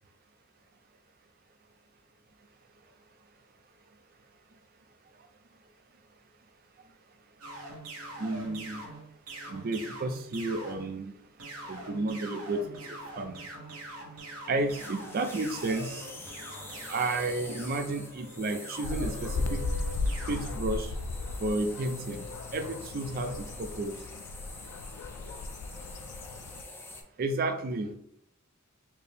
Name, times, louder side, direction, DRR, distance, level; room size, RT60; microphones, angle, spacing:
sound 1, 7.4-11.0 11.4-20.5, right 2 dB, 90° right, 1.1 m, -44 dB
voice 1, 8.2-8.9 9.5-11.1 11.7-12.6 13.2-13.4 14.5-16.0 16.9-19.7 20.3-20.9 21.4-22.2 22.5-24.0 27.2-27.9, right 2 dB, 45° right, 7 dB, 0.4 m, -32 dB
sound 2, 14.7-27.0, left 2 dB, 10° left, 0.4 m, -46 dB
sound 3, 18.8-26.6, left 3 dB, 85° left, 0.3 m, -36 dB
4.4 x 2.0 x 3.3 m, 0.67 s
head